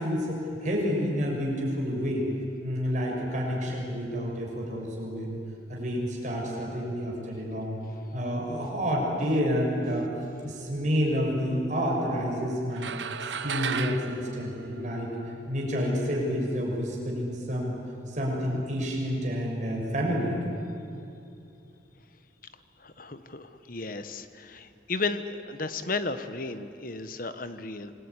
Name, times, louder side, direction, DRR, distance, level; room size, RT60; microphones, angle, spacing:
voice 1, 0.0-2.2 2.6-5.4 5.7-7.8 8.1-10.1 10.4-12.9 13.4-15.1 15.5-17.7 18.1-20.5, equal, 40° right, -2 dB, 6.7 m, -29 dB
sound 1, 12.8-15.4, right 6 dB, 70° right, 1.0 m, -34 dB
voice 2, 22.8-27.9, left 3 dB, 45° left, 11 dB, 1.3 m, -34 dB
26.5 x 21.0 x 9.9 m, 2.7 s
head